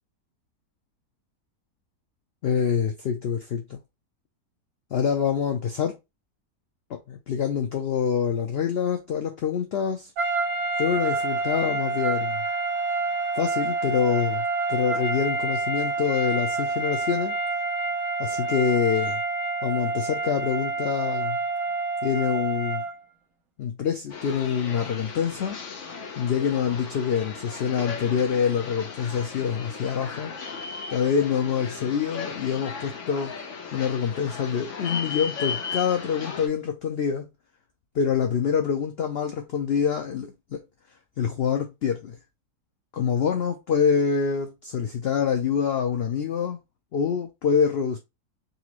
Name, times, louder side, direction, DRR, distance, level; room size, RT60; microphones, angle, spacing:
voice 1, 2.4-3.8 4.9-6.0 6.9-10.1 10.8-12.4 13.3-17.4 18.2-19.2 19.6-21.4 22.0-22.8 23.6-25.6 26.2-30.3 30.9-33.3 33.7-37.3 37.9-40.6 41.2-42.2 42.9-46.6 46.9-48.0, left 7 dB, 75° left, 0.5 m, -26 dB
sound 1, 10.2-23.0, right 3 dB, 60° right, 1.4 m, -28 dB
sound 2, 24.1-36.5, left 5 dB, 55° left, 1.0 m, -36 dB
4.0 x 2.5 x 2.9 m
omnidirectional pair, 1.6 m